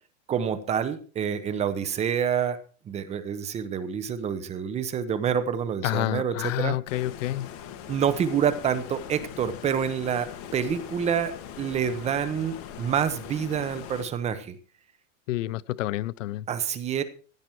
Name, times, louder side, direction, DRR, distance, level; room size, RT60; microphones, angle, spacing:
voice 1, 0.3-2.6 2.9-6.8 7.9-14.6 16.5-17.0, right 8 dB, 15° right, 1.0 m, -27 dB
voice 2, 5.8-7.5 15.3-16.5, left 15 dB, 80° left, 0.6 m, -29 dB
Stream, 6.9-14.1, left 9 dB, 40° left, 2.1 m, -41 dB
16.5 x 10.5 x 4.7 m
supercardioid pair, 160°, 37 cm